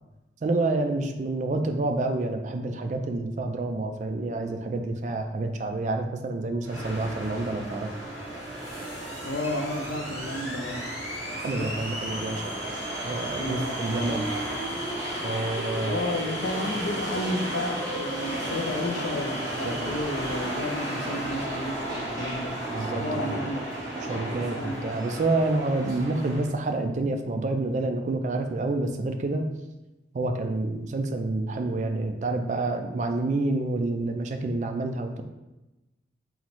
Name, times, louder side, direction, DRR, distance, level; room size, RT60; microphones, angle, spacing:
voice 1, 0.4-7.9 11.4-12.5 13.0-14.3 15.2-16.1 19.6-19.9 22.7-23.3 24.0-29.4 30.1-35.2, right 2 dB, 40° right, 5 dB, 0.3 m, -28 dB
sound 1, 6.6-26.5, right 1 dB, 20° right, 1.1 m, -33 dB
voice 2, 9.2-10.8 11.6-11.7 13.4-13.7 15.8-22.6 23.0-23.6 24.5-24.8, left 1 dB, 70° left, 4 dB, 0.5 m, -32 dB
3.9 x 2.1 x 4.4 m, 1.0 s
head